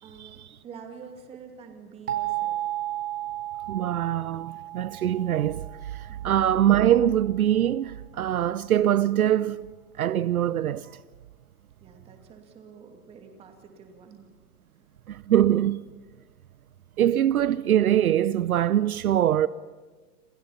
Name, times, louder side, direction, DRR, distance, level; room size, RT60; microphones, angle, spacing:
voice 1, 0.0-2.7 6.1-6.2 11.8-14.3, right 6 dB, 15° right, 2.3 m, -47 dB
sound 1, 2.1-6.8, right 14 dB, 90° right, 4.6 m, -34 dB
voice 2, 3.7-5.6 6.0-9.7 10.0-10.9 15.1-15.8 17.0-19.5, right 11 dB, 70° right, 0.8 m, -23 dB
28.5 x 28.0 x 5.7 m
hypercardioid pair, 165°, 45 cm